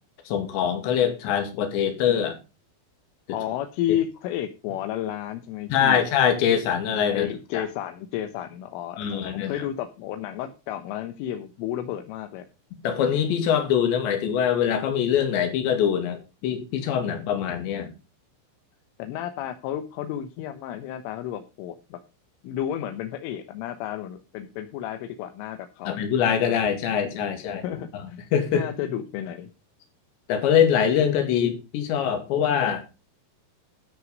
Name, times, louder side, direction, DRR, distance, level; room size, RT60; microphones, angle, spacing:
voice 1, 0.3-2.4 5.7-7.3 7.5-7.6 9.0-9.6 12.8-17.9 25.9-28.0 28.3-28.6 30.3-32.8, left 8 dB, 65° left, 6 dB, 4.4 m, -23 dB
voice 2, 3.3-6.0 7.1-12.5 19.0-22.0 22.4-26.1 27.6-28.3 28.5-29.5, left 11 dB, 80° left, 8 dB, 3.6 m, -32 dB
13.5 x 7.9 x 5.3 m, 0.30 s
omnidirectional pair, 5.7 m